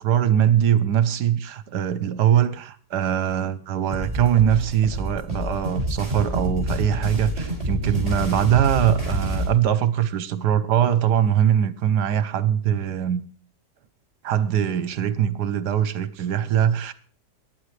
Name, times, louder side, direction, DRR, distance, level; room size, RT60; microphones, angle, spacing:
voice 1, 0.0-13.2 14.2-16.9, right 10 dB, 75° right, 1.4 m, -22 dB
sound 1, 3.9-9.5, equal, 25° right, 6.2 m, -27 dB
23.0 x 10.5 x 3.2 m
omnidirectional pair, 1.8 m